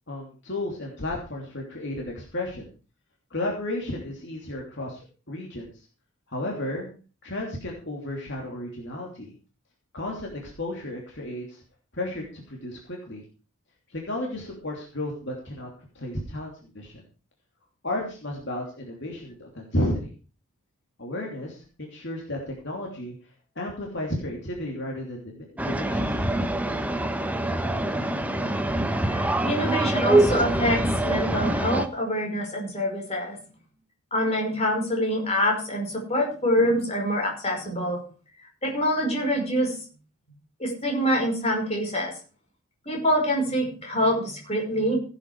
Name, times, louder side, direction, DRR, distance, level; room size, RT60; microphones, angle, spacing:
voice 1, 0.1-2.7 3.3-5.8 6.3-6.9 7.2-9.3 9.9-11.6 11.9-13.2 13.9-15.7 15.9-17.0 17.8-20.1 21.0-23.1 23.5-26.3, left 1 dB, 50° left, -1 dB, 3.0 m, -33 dB
sound 1, 25.6-31.9, right 1 dB, 5° right, 0.9 m, -24 dB
voice 2, 29.0-33.4 34.1-38.0 38.6-39.7 40.6-42.1 42.9-45.0, equal, 30° left, 0 dB, 5.4 m, -25 dB
16.5 x 8.9 x 4.8 m, 0.36 s
head